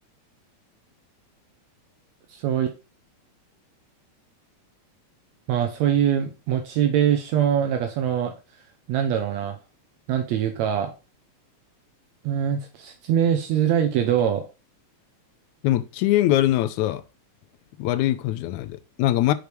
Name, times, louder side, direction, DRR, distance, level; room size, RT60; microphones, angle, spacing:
voice 1, 2.3-2.7 5.5-8.3 8.9-9.6 10.1-10.9 12.2-14.4, right 9 dB, 75° right, 2.0 m, -23 dB
voice 2, 15.6-17.0 17.8-19.3, left 14 dB, 90° left, 2.0 m, -22 dB
6.5 x 5.2 x 4.5 m
omnidirectional pair, 3.3 m